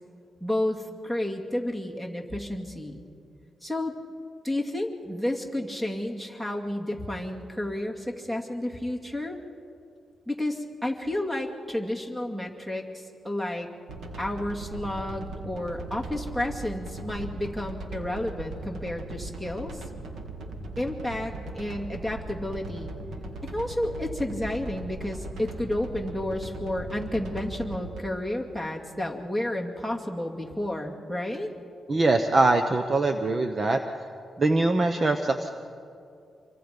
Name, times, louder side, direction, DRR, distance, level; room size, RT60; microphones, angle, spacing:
voice 1, 0.4-3.0 3.6-3.9 4.4-9.4 10.3-13.7 14.2-19.8 20.8-22.9 23.4-31.5, left 1 dB, 10° right, 2 dB, 2.4 m, -31 dB
sound 1, 13.9-28.0, right 2 dB, 80° right, 2.1 m, -39 dB
voice 2, 31.9-33.8 34.4-35.5, right 2 dB, 35° right, 7 dB, 0.9 m, -22 dB
27.0 x 23.5 x 5.3 m, 2.5 s
cardioid pair, 120°, 0 cm